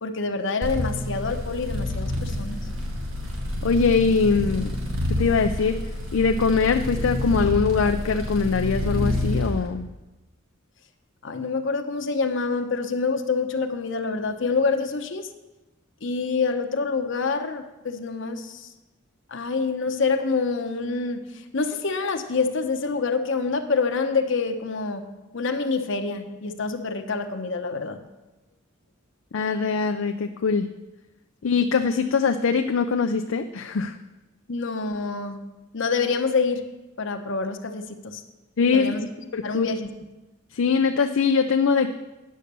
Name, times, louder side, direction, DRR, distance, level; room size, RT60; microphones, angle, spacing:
voice 1, 0.0-2.6 11.2-15.3 16.0-18.7 19.3-25.1 25.3-28.0 34.5-35.4 35.7-36.7 37.0-38.2 38.7-39.1 39.4-39.9, left 4 dB, 65° left, 6 dB, 0.9 m, -26 dB
sound 1, 0.6-9.5, left 1 dB, 90° right, 2.1 m, -28 dB
voice 2, 3.6-4.7 5.1-5.8 6.1-9.9 29.3-30.7 31.4-34.0 38.6-39.0 39.3-39.7 40.5-41.9, left 5 dB, 85° left, 6 dB, 0.5 m, -22 dB
10.0 x 6.4 x 6.7 m, 1.1 s
head